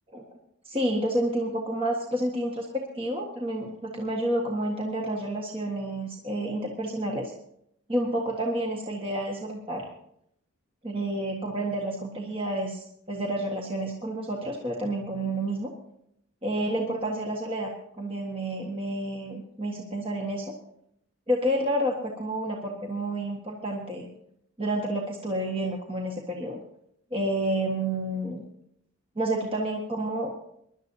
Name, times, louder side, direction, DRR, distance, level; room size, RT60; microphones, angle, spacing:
voice 1, 0.6-7.3 7.9-9.9 10.8-15.7 16.4-17.7 18.0-20.5 21.3-24.1 24.6-26.6 27.1-28.4 29.1-30.5, right 1 dB, 25° right, -1 dB, 1.6 m, -29 dB
23.5 x 12.0 x 2.8 m, 0.73 s
head